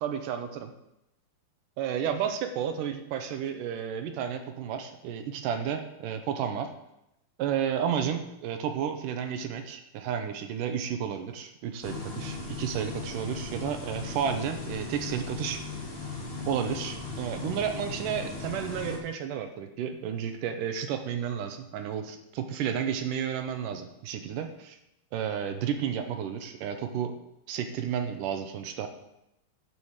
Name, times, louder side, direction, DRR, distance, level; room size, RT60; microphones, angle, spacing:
voice 1, 0.0-0.7 1.8-6.7 7.4-15.6 16.5-24.8 25.1-27.1 27.5-28.9, right 8 dB, 75° right, 7 dB, 2.1 m, -32 dB
sound 1, 11.8-19.0, left 3 dB, 65° left, 0.5 m, -37 dB
12.0 x 4.8 x 7.2 m, 0.86 s
omnidirectional pair, 4.4 m